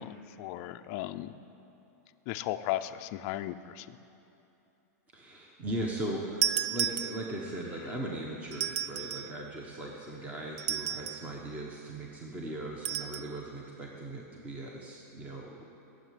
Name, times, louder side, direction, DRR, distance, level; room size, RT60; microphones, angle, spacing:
voice 1, 0.0-1.3 2.3-3.9, left 14 dB, 40° left, 7 dB, 0.5 m, -36 dB
voice 2, 5.1-15.6, right 1 dB, 15° right, -1 dB, 1.2 m, -38 dB
sound 1, 6.4-7.6 8.5-9.4 10.6-11.3 12.8-13.3, right 10 dB, 55° right, 0.4 m, -33 dB
16.0 x 7.5 x 9.4 m, 2.9 s
supercardioid pair, 155°, 9 cm